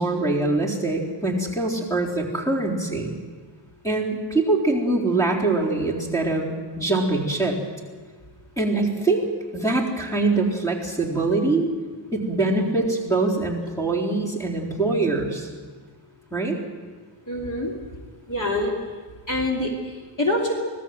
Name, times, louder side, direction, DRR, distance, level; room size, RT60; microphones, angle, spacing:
voice 1, 0.0-3.2 3.8-7.6 8.6-9.3 9.5-11.7 12.1-15.5 16.3-16.6, right 2 dB, 5° left, -1 dB, 3.9 m, -23 dB
voice 2, 17.3-17.7 18.3-18.7 19.3-20.6, left 1 dB, 40° left, -1 dB, 3.1 m, -25 dB
25.5 x 18.0 x 7.7 m, 1.5 s
wide cardioid pair, 160°, 48 cm